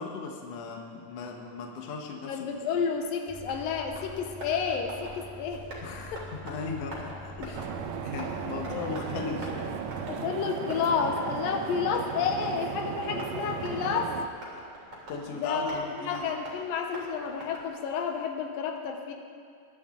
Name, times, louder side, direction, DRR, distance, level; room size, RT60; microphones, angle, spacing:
voice 1, 0.0-2.4 2.7-2.8 5.8-9.8 10.2-10.3 15.1-16.2, left 4 dB, 55° left, 2 dB, 2.0 m, -38 dB
voice 2, 2.3-5.6 6.1-6.2 8.7-9.0 10.1-14.1 15.3-19.1, left 6 dB, 85° left, 3 dB, 2.6 m, -30 dB
Tap, 2.5-18.0, right 1 dB, 45° right, 4.0 m, -46 dB
sound 1, 3.3-10.1, equal, 10° left, 1.6 m, -46 dB
sound 2, 7.5-14.3, right 8 dB, 80° right, 1.6 m, -36 dB
21.5 x 11.5 x 3.8 m, 2.2 s
omnidirectional pair, 4.0 m